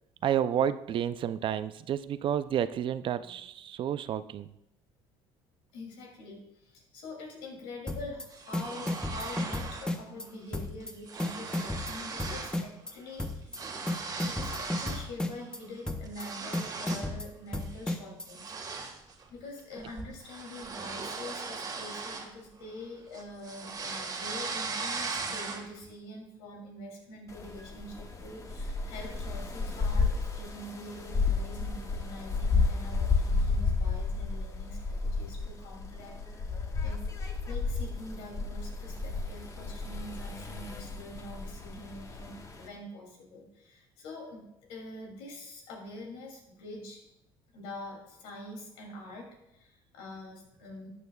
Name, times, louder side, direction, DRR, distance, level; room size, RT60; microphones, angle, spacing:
voice 1, 0.2-4.5, right 9 dB, 50° right, 13 dB, 0.5 m, -30 dB
voice 2, 5.7-6.4 6.6-13.6 14.2-18.4 19.3-36.1 36.8-44.4 44.7-47.0 47.5-49.3 49.6-50.9, left 1 dB, 85° left, 0 dB, 2.8 m, -45 dB
sound 1, 7.9-8.2 8.5-10.3 10.5-10.9 11.2-12.9 13.2-13.6 13.9-15.6 15.9-16.3 16.5-18.3, left 1 dB, 10° left, 1.0 m, -33 dB
sound 2, 8.3-10.0 10.3-10.6 10.8-12.6 12.9-15.1 15.5-17.2 17.6-17.8 18.3-22.8 23.1-25.8, right 4 dB, 35° right, 1.7 m, -38 dB
sound 3, 27.3-42.7, left 4 dB, 30° left, 1.4 m, -32 dB
13.0 x 8.6 x 2.3 m, 0.84 s
supercardioid pair, 90°, 11 cm